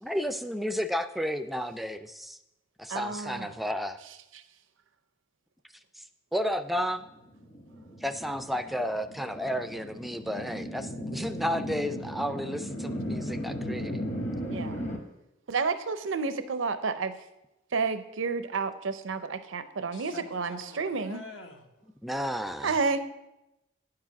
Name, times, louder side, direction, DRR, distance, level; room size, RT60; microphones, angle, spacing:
voice 1, 0.0-2.4 2.8-4.0 6.0-6.1 6.3-7.0 8.0-14.0 22.0-22.7, equal, ahead, 10 dB, 0.3 m, -32 dB
voice 2, 2.9-3.6 4.3-4.4 14.5-14.8 15.5-17.3 17.7-21.2 22.6-23.0, right 4 dB, 85° right, 11 dB, 0.6 m, -30 dB
sound 1, 7.3-15.0, equal, 40° left, 1.1 m, -36 dB
voice 3, 19.9-21.9, left 2 dB, 75° left, 4 dB, 1.1 m, -46 dB
9.6 x 4.8 x 5.9 m, 0.92 s
head